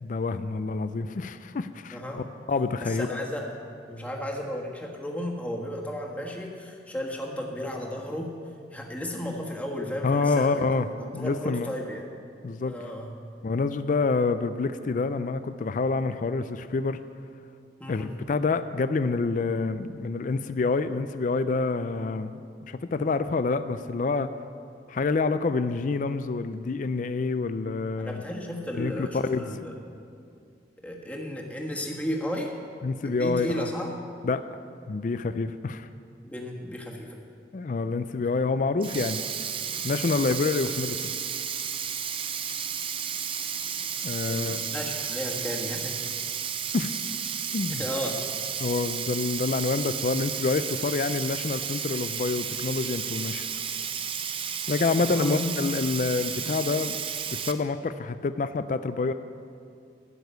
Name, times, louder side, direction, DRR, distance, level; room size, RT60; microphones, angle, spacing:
voice 1, 0.0-2.0 2.5-3.3 10.0-10.9 11.1-11.7 12.4-12.7 13.4-17.0 17.9-22.4 22.7-24.3 24.9-28.2 28.7-29.5 32.8-33.7 34.2-34.4 34.9-35.9 37.5-39.2 39.8-41.1 44.0-44.6 46.7-46.9 47.5-47.8 48.6-53.5 54.7-57.0 57.3-59.1, left 4 dB, 45° left, 11 dB, 0.4 m, -27 dB
voice 2, 1.9-2.3 2.8-3.5 3.9-8.4 8.7-10.6 11.0-12.0 12.6-13.1 17.8-18.1 28.0-29.7 30.8-32.6 33.0-33.9 36.2-37.2 44.3-46.0 47.7-48.2 55.0-55.5 55.8-55.9, equal, 10° left, -1 dB, 1.4 m, -34 dB
Sink (filling or washing), 38.7-57.5, right 7 dB, 30° right, 0.6 m, -32 dB
12.5 x 6.9 x 9.3 m, 2.4 s
head